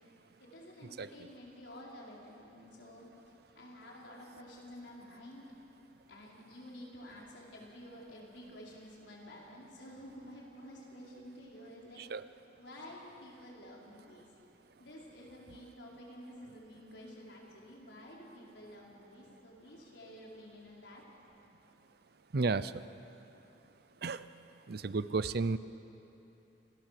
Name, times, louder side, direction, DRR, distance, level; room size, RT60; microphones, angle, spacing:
voice 1, 0.4-3.0 3.5-5.5 6.1-12.0 12.6-14.3 14.8-21.0, left 1 dB, 80° left, -3 dB, 4.8 m, -51 dB
voice 2, 22.3-22.7 24.0-24.3 24.7-25.6, right 4 dB, 60° right, 15 dB, 0.6 m, -32 dB
27.5 x 18.5 x 6.8 m, 3.0 s
head